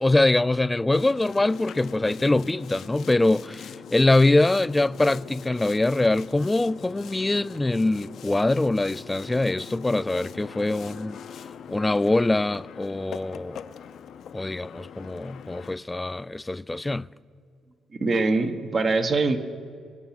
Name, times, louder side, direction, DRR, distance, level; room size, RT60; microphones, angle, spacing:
voice 1, 0.0-11.2 11.7-13.7 14.3-17.1, left 2 dB, 15° left, 0.3 m, -23 dB
Boat Water vehicle, 0.9-15.7, left 8 dB, 70° left, 0.6 m, -42 dB
voice 2, 17.9-19.4, right 3 dB, 45° right, 1.2 m, -23 dB
23.5 x 8.1 x 5.9 m
cardioid pair, 90°, 0 cm